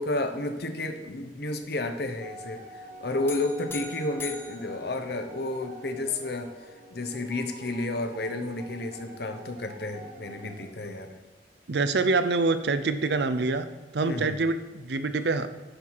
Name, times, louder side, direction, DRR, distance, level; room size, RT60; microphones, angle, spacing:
voice 1, 0.0-6.5 6.9-11.1 14.0-14.4, left 2 dB, 60° left, 6 dB, 0.9 m, -31 dB
sound 1, 2.2-10.7, right 1 dB, 45° right, 1.0 m, -46 dB
sound 2, 3.3-5.7, left 5 dB, 15° left, 0.9 m, -42 dB
voice 2, 11.7-13.7 13.9-15.5, right 3 dB, 65° right, 10 dB, 0.6 m, -25 dB
10.0 x 5.6 x 4.7 m, 1.2 s
head